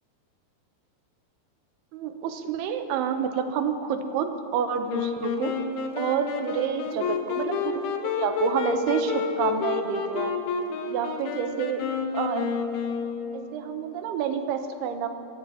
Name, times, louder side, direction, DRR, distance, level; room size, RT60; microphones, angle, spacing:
voice 1, 1.9-5.5 6.0-10.3 10.9-11.8 12.1-12.5 13.3-15.1, right 7 dB, 80° right, 7 dB, 2.8 m, -28 dB
Wind instrument woodwind instrument, 4.9-13.6, left 6 dB, 75° left, 2.6 m, -30 dB
22.5 x 14.0 x 2.9 m, 2.7 s
omnidirectional pair, 4.7 m